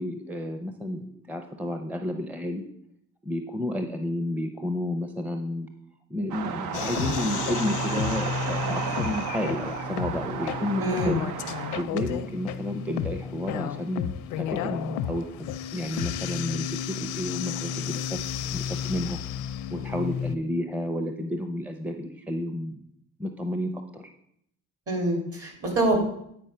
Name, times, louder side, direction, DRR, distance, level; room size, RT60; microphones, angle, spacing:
voice 1, 0.0-2.6 3.2-5.7 6.1-11.2 11.7-19.2 19.7-22.8 23.2-24.0, left 1 dB, 5° right, 6 dB, 0.6 m, -31 dB
sound 1, 6.3-11.8, right 7 dB, 80° right, 0.7 m, -33 dB
sound 2, 6.7-20.4, left 9 dB, 85° left, 0.5 m, -32 dB
voice 2, 10.8-11.2 24.9-26.0, right 1 dB, 50° right, 1 dB, 3.0 m, -25 dB
9.1 x 4.6 x 5.5 m, 0.72 s
cardioid pair, 90°, 30 cm